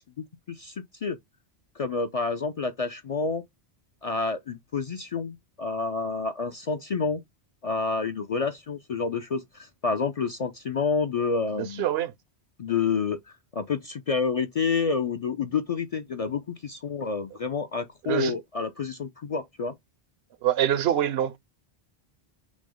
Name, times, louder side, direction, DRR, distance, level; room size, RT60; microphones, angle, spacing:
voice 1, 0.2-1.2 1.8-3.4 4.0-7.2 7.6-11.9 12.6-19.7, left 5 dB, 50° left, 0.4 m, -29 dB
voice 2, 11.8-12.1 18.1-18.3 20.4-21.4, right 11 dB, 75° right, 0.8 m, -24 dB
6.0 x 2.0 x 3.8 m
omnidirectional pair, 1.1 m